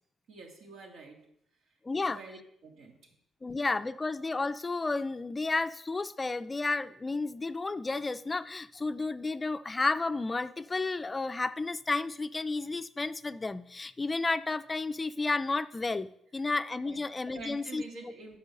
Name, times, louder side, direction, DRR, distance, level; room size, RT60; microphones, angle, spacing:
voice 1, 0.3-1.3 1.9-3.0 16.8-17.1 17.3-18.4, right 3 dB, 75° right, 1 dB, 2.4 m, -47 dB
voice 2, 1.8-2.2 3.4-17.8, left 3 dB, 25° left, 12 dB, 0.4 m, -32 dB
8.9 x 5.5 x 6.4 m, 0.73 s
cardioid pair, 90°, 0 cm